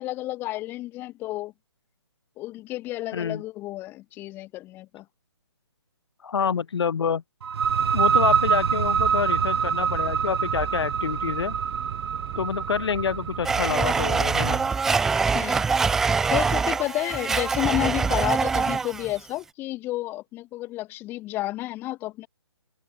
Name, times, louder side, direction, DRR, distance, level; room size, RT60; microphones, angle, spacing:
voice 1, 0.0-1.5 2.4-5.0 15.3-15.6 16.3-22.3, left 17 dB, 15° left, 1.0 m, -31 dB
voice 2, 3.1-3.4 6.2-7.2 7.9-11.5 12.4-14.6, left 6 dB, 65° left, 0.8 m, -27 dB
sound 1, 7.4-14.9, right 7 dB, 60° right, 1.6 m, -26 dB
sound 2, 7.6-14.7, right 23 dB, 25° right, 2.0 m, -38 dB
Domestic sounds home sounds, 13.4-19.1, right 5 dB, 5° right, 0.3 m, -24 dB
hypercardioid pair, 155°, 15 cm